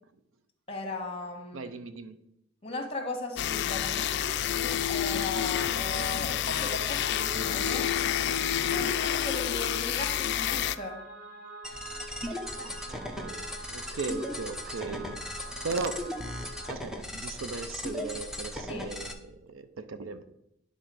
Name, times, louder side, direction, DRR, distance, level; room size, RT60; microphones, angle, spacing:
voice 1, 0.7-1.7 2.6-7.9 8.5-11.1 18.7-18.9, left 1 dB, 30° left, 4 dB, 1.4 m, -37 dB
voice 2, 1.5-2.2 12.6-15.2 15.6-16.1 16.7-20.2, right 4 dB, 80° right, 11 dB, 0.5 m, -37 dB
sound 1, 3.4-10.8, left 10 dB, 55° left, 0.4 m, -29 dB
sound 2, 6.5-16.7, right 2 dB, 40° right, 1.3 m, -45 dB
sound 3, 11.6-19.1, left 1 dB, 5° right, 0.7 m, -38 dB
10.0 x 3.7 x 6.1 m, 0.82 s
head